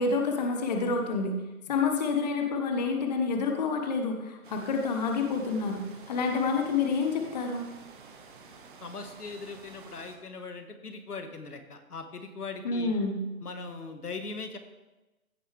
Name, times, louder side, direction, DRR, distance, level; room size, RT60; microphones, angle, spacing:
voice 1, 0.0-1.3 1.7-5.8 6.1-7.7 12.6-13.2, left 4 dB, 30° left, 3 dB, 0.9 m, -28 dB
sound 1, 4.4-10.2, right 4 dB, 35° right, 1.1 m, -50 dB
voice 2, 8.8-12.9 13.4-14.6, left 4 dB, 85° left, 7 dB, 1.5 m, -40 dB
15.0 x 6.7 x 3.3 m, 1.1 s
figure-of-eight pair, 150°, 45 cm